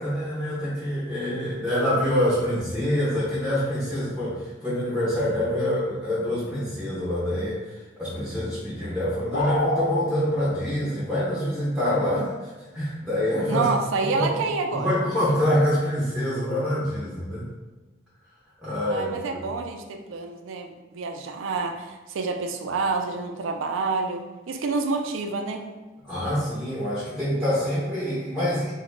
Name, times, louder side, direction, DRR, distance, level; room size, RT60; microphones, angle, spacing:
voice 1, 0.0-13.7 14.2-14.3 14.7-17.5 18.6-19.4 26.0-28.7, equal, 5° right, -9 dB, 0.5 m, -26 dB
sound 1, 9.3-9.9, left 2 dB, 90° left, 0.4 m, -25 dB
voice 2, 13.5-14.9 18.9-25.6, right 4 dB, 80° right, 5 dB, 0.3 m, -28 dB
2.9 x 2.1 x 3.1 m, 1.2 s
head